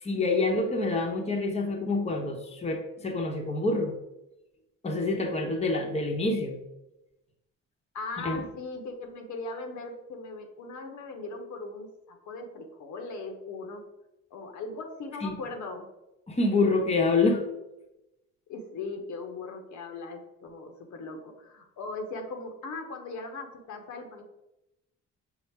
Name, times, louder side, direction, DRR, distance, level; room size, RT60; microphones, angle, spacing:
voice 1, 0.0-3.9 4.8-6.6 8.2-8.4 15.2-15.3 16.3-17.4, left 3 dB, 20° left, 2 dB, 0.8 m, -27 dB
voice 2, 7.9-13.8 14.3-15.8 18.5-24.2, left 3 dB, 70° left, 4 dB, 0.9 m, -39 dB
5.6 x 2.0 x 4.5 m, 0.92 s
cardioid pair, 90°, 30 cm